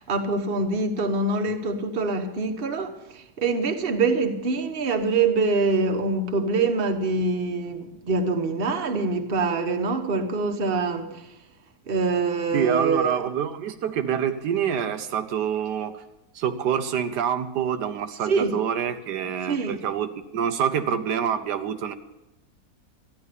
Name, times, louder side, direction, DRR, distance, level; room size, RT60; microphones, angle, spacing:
voice 1, 0.0-11.3 11.9-13.3 18.3-18.5 19.4-19.8, right 3 dB, 40° right, 1.2 m, -25 dB
voice 2, 12.5-16.0 16.3-21.9, right 8 dB, 90° right, 1.4 m, -26 dB
13.5 x 10.5 x 6.7 m
omnidirectional pair, 1.7 m